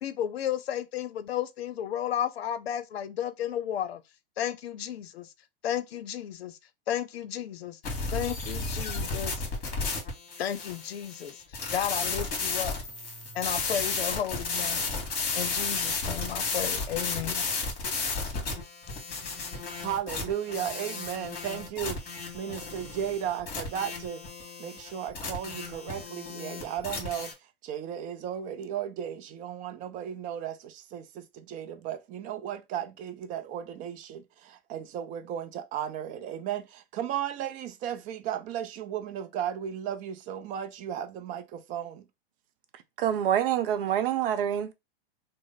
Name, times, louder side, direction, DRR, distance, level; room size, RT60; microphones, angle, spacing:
voice 1, 0.0-4.0 4.4-5.3 5.6-6.6 6.9-7.8 8.1-9.4 10.4-11.4 11.7-12.8 13.3-15.0 15.3-17.5, left 10 dB, 80° left, 0.6 m, -33 dB
sound 1, 7.8-27.3, left 4 dB, 30° left, 1.7 m, -33 dB
voice 2, 19.8-24.2 24.6-27.3 27.6-42.0, right 9 dB, 25° right, 0.4 m, -35 dB
voice 3, 43.0-44.7, right 10 dB, 60° right, 0.7 m, -26 dB
3.1 x 2.0 x 3.9 m
hypercardioid pair, 120°, 30 cm